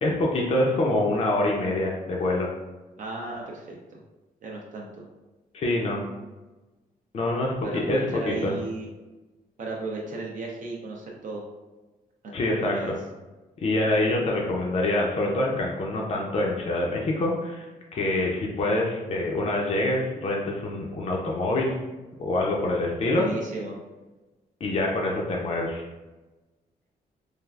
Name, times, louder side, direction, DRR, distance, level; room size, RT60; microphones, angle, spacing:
voice 1, 0.0-2.5 5.5-6.0 7.1-8.5 12.3-12.9 13.6-17.7 17.9-21.8 22.2-23.2 24.6-25.8, left 2 dB, 40° left, -2 dB, 0.4 m, -25 dB
voice 2, 3.0-4.0 4.4-5.1 7.6-8.9 9.6-11.4 12.2-12.3 12.6-12.9 23.1-23.8, right 3 dB, 55° right, -1 dB, 0.5 m, -34 dB
3.2 x 2.3 x 2.3 m, 1.1 s
wide cardioid pair, 140°, 16 cm